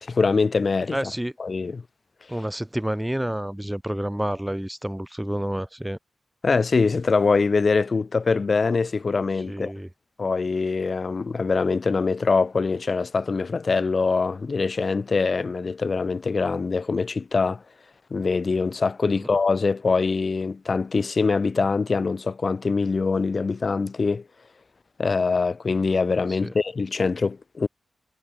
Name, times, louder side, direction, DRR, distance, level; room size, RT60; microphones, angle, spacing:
voice 1, 0.0-1.1 1.4-1.8 6.4-9.7 10.2-17.6 18.1-24.2 25.0-27.7, left 4 dB, 55° left, 0.6 m, -23 dB
voice 2, 0.9-1.3 2.3-6.0 9.5-9.9 19.2-19.3 26.3-26.5, right 1 dB, 10° right, 1.6 m, -29 dB
cardioid pair, 55°, 0 cm